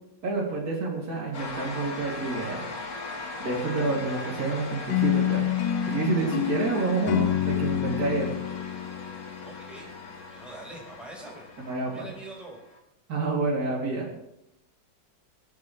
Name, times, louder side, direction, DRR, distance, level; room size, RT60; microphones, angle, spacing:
voice 1, 0.2-2.6 3.4-5.5 5.9-8.3 11.6-12.1 13.1-14.1, right 3 dB, 50° right, -3 dB, 3.3 m, -28 dB
sound 1, 1.3-12.8, left 3 dB, 50° left, 2.2 m, -39 dB
sound 2, 4.9-10.0, left 11 dB, 85° left, 1.6 m, -28 dB
voice 2, 9.4-11.5 11.9-12.6, right 2 dB, ahead, -3 dB, 4.3 m, -44 dB
25.5 x 9.5 x 3.2 m, 0.86 s
omnidirectional pair, 2.1 m